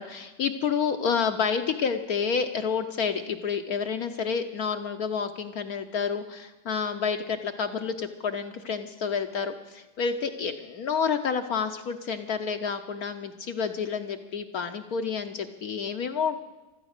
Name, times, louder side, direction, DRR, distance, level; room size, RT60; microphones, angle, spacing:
voice 1, 0.0-16.4, left 6 dB, 65° left, 6 dB, 1.1 m, -29 dB
15.0 x 12.5 x 6.5 m, 1.1 s
omnidirectional pair, 1.9 m